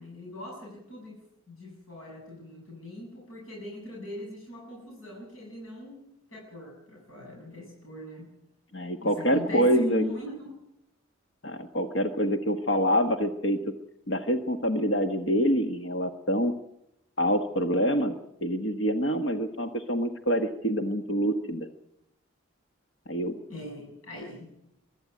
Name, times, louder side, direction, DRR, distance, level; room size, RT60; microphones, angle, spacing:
voice 1, 0.0-8.3 9.0-10.5 23.5-24.5, left 1 dB, 90° left, -2 dB, 7.9 m, -40 dB
voice 2, 8.7-10.0 11.4-13.6 14.1-16.5 17.2-18.1 18.4-21.7 23.1-23.3, equal, 65° left, 6 dB, 1.3 m, -26 dB
23.0 x 12.5 x 9.3 m, 0.82 s
head